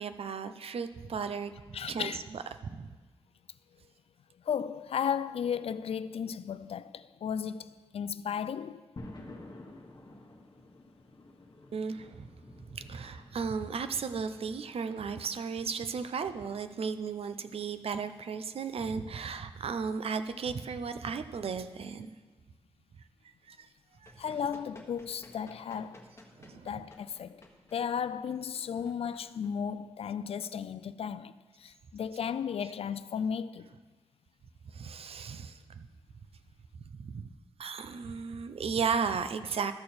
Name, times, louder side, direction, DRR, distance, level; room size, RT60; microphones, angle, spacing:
voice 1, 0.0-1.5 1.9-2.9 11.7-12.3 12.7-22.1 23.5-23.7 24.0-24.4 26.3-26.7 28.8-28.9 34.6-35.9 37.0-37.3 37.6-39.7, right 5 dB, 75° right, 0.6 m, -35 dB
voice 2, 1.7-2.2 4.4-8.8 24.2-26.0 26.6-27.4 27.7-33.7, left 7 dB, 80° left, 0.4 m, -35 dB
sound 1, 9.0-21.9, left 2 dB, 45° left, 1.3 m, -54 dB
Run, 23.7-30.1, left 2 dB, 30° left, 1.2 m, -56 dB
13.0 x 6.7 x 4.3 m
wide cardioid pair, 120°, 10 cm